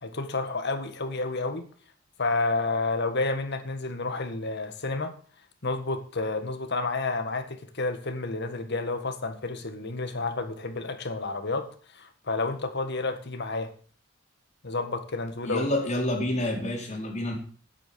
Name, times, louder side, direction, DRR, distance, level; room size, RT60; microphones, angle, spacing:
voice 1, 0.0-1.7 2.2-5.1 5.6-13.7 14.6-15.7, left 3 dB, 60° left, 7 dB, 1.8 m, -30 dB
voice 2, 15.4-17.3, left 1 dB, 35° left, -1 dB, 4.5 m, -28 dB
9.8 x 9.0 x 7.0 m, 0.43 s
head